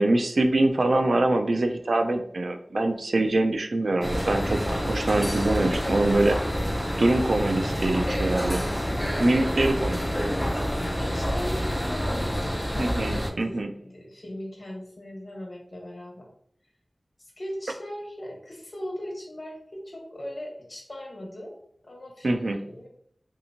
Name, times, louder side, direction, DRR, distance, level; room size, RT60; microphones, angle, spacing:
voice 1, 0.0-4.6 4.9-6.4 7.0-8.6 9.2-10.0 12.8-13.7 22.2-22.6, right 2 dB, 80° right, 6 dB, 0.3 m, -24 dB
sound 1, 4.0-13.3, equal, 5° left, 0.5 m, -27 dB
voice 2, 9.6-10.0 10.7-16.3 17.2-21.5 21.8-22.9, left 1 dB, 50° left, -1 dB, 1.1 m, -39 dB
3.3 x 2.9 x 2.7 m, 0.67 s
wide cardioid pair, 55°, 0 cm